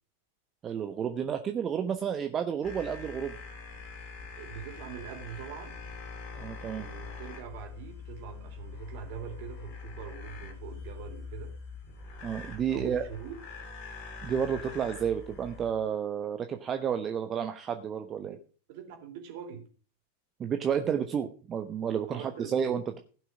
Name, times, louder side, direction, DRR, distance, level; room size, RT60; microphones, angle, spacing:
voice 1, 0.6-3.3 6.4-6.9 12.2-13.1 14.2-18.4 20.4-23.0, right 8 dB, 25° right, 1.0 m, -31 dB
sound 1, 2.6-15.7, left 4 dB, 45° left, 3.4 m, -44 dB
voice 2, 4.4-5.8 6.8-11.5 12.7-13.3 18.3-18.4 18.7-19.6 22.1-22.7, right 8 dB, 50° right, 3.6 m, -43 dB
15.5 x 6.2 x 6.2 m
figure-of-eight pair, 90°, 0 cm